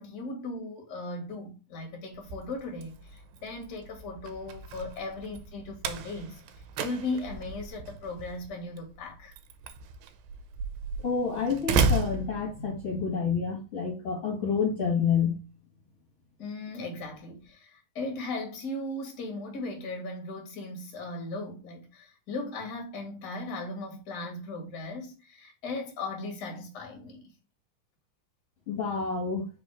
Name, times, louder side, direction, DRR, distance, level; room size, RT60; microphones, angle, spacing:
voice 1, 0.0-9.3 16.4-27.3, left 2 dB, 35° left, 1.9 m, -37 dB
Slam, 2.1-13.0, right 4 dB, 85° right, 2.4 m, -34 dB
voice 2, 11.0-15.4 28.7-29.5, left 6 dB, 50° left, 2.1 m, -28 dB
4.9 x 4.0 x 4.9 m
omnidirectional pair, 4.1 m